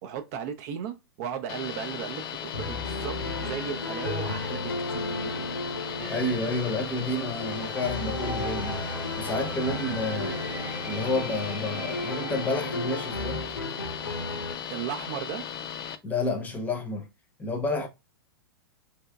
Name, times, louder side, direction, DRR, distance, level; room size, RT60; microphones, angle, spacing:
voice 1, 0.0-5.4 14.7-15.5, right 8 dB, 40° right, 0.5 m, -36 dB
sound 1, 1.5-16.0, left 8 dB, 40° left, 0.4 m, -37 dB
sound 2, 2.5-14.6, left 2 dB, 80° left, 0.8 m, -35 dB
sound 3, 6.0-13.4, right 2 dB, 10° right, 1.0 m, -40 dB
voice 2, 6.1-8.8 9.2-10.5 10.8-13.4 16.0-17.1 17.4-17.9, left 2 dB, 15° left, 0.8 m, -30 dB
3.4 x 2.9 x 2.3 m
figure-of-eight pair, 100°, 12 cm